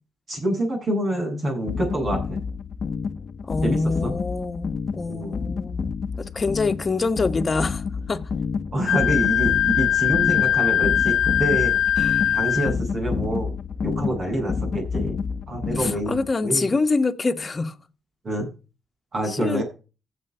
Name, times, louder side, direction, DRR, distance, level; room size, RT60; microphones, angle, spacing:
voice 1, 0.3-2.4 3.6-4.2 5.1-5.4 8.7-11.7 12.3-13.5 13.8-15.2 15.5-16.7 18.2-18.5 19.1-19.6, right 1 dB, 45° right, 7.8 m, -26 dB
sound 1, 1.7-16.3, left 5 dB, 50° left, 1.1 m, -29 dB
voice 2, 3.4-5.9 6.2-8.2 12.0-12.4 15.8-17.7 19.3-19.6, left 3 dB, 35° left, 1.6 m, -25 dB
Wind instrument woodwind instrument, 8.9-12.7, left 10 dB, 80° left, 0.7 m, -21 dB
15.0 x 7.5 x 5.7 m
cardioid pair, 80°, 0 cm